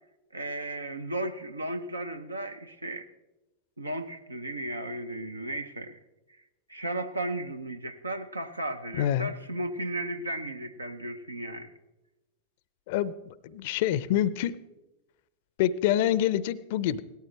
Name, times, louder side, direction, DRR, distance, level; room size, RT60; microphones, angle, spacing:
voice 1, 0.3-3.1 3.8-6.0 6.7-11.7, right 1 dB, 80° right, 0.8 m, -35 dB
voice 2, 9.0-9.3 12.9-13.2 13.4-14.6 15.6-17.0, left 11 dB, 50° left, 0.5 m, -26 dB
18.0 x 13.0 x 3.3 m
figure-of-eight pair, 90°, 0 cm